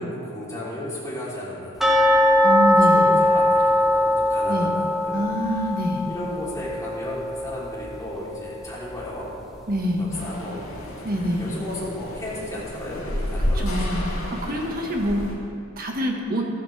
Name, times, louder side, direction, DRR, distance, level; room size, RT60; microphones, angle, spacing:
voice 1, 0.0-2.0 2.6-5.7 6.0-9.7 10.0-14.6, left 1 dB, 15° left, -7 dB, 3.5 m, -35 dB
sound 1, 1.8-8.7 8.9-9.0 9.5-9.6 10.2-10.3, left 1 dB, ahead, 1.8 m, -21 dB
voice 2, 2.4-3.1 4.5-4.7 5.1-6.0 9.7-10.0 11.0-11.4 13.6-14.0 14.4-15.2 15.8-16.5, equal, 45° right, 1 dB, 1.6 m, -25 dB
sound 2, 10.1-15.3, left 1 dB, 85° left, 2.5 m, -30 dB
15.0 x 13.0 x 3.5 m, 2.3 s
head